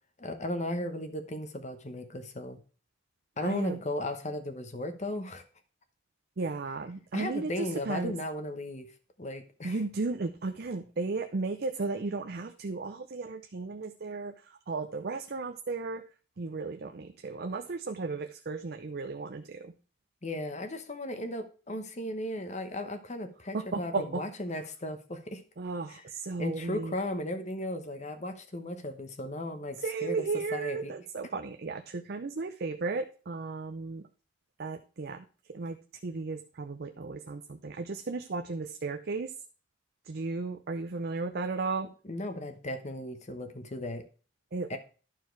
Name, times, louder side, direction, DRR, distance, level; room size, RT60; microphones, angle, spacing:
voice 1, 0.2-2.6 3.4-5.4 7.1-8.9 9.2-9.8 20.2-25.4 25.9-26.0 26.4-30.2 30.5-30.9 42.1-44.0 44.7-44.8, left 1 dB, 35° left, 8 dB, 1.1 m, -36 dB
voice 2, 3.4-3.8 6.4-8.1 9.6-16.0 16.4-19.7 23.5-24.2 25.6-26.9 29.8-34.1 34.6-35.8 36.0-39.3 40.1-41.9 44.5-44.8, right 3 dB, 55° right, 6 dB, 0.6 m, -35 dB
11.5 x 4.6 x 4.5 m, 0.37 s
head